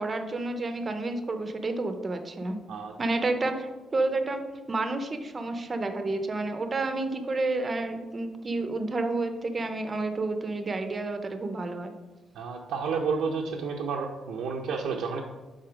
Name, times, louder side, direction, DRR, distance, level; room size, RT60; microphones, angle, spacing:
voice 1, 0.0-2.6 3.0-11.9, right 2 dB, 25° right, 7 dB, 0.6 m, -30 dB
voice 2, 12.3-15.2, right 5 dB, 85° right, -1 dB, 0.7 m, -30 dB
7.7 x 4.3 x 5.0 m, 1.2 s
cardioid pair, 165°, 0 cm